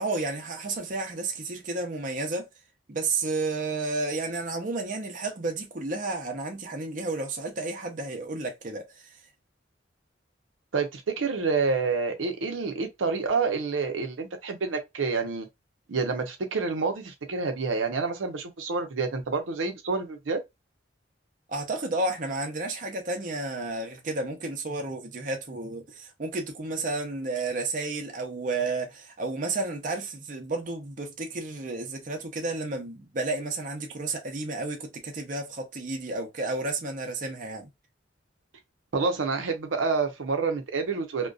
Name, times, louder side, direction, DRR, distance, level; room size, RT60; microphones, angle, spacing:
voice 1, 0.0-2.5 2.9-9.2 21.5-37.7, right 3 dB, 45° right, 0.6 m, -32 dB
voice 2, 10.7-15.5 15.9-20.4 38.9-41.3, right 4 dB, 90° right, 0.6 m, -28 dB
2.5 x 2.2 x 2.3 m
head